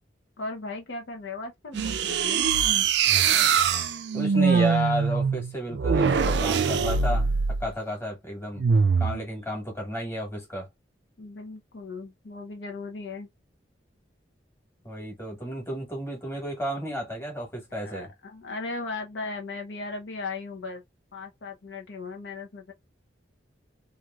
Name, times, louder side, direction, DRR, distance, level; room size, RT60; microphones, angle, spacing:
voice 1, 0.4-2.5 11.2-13.3 17.8-20.8 21.1-22.7, left 3 dB, 70° left, 0.7 m, -37 dB
sound 1, 1.7-7.7 8.6-9.2, right 6 dB, 65° right, 0.4 m, -23 dB
voice 2, 4.1-7.3 7.6-8.6 9.0-10.7 14.8-18.1, equal, 15° left, 1.3 m, -32 dB
3.1 x 2.5 x 2.3 m
head